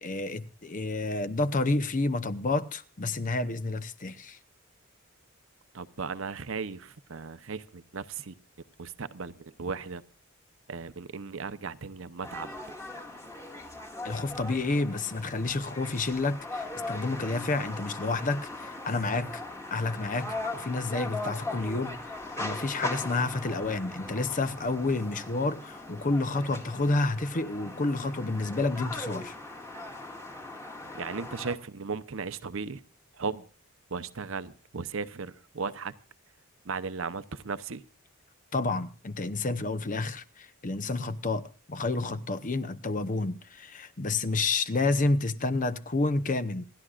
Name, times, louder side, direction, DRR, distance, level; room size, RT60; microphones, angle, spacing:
voice 1, 0.0-4.4 14.0-19.4 19.7-29.4 38.5-46.6, left 3 dB, 35° left, 0.8 m, -30 dB
voice 2, 5.7-8.3 8.8-10.0 10.7-12.5 30.9-32.8 33.2-33.5 33.9-35.9 36.6-37.8, right 4 dB, 65° right, 0.8 m, -36 dB
sound 1, 12.2-31.6, left 2 dB, 15° left, 1.9 m, -39 dB
28.0 x 11.5 x 2.4 m
head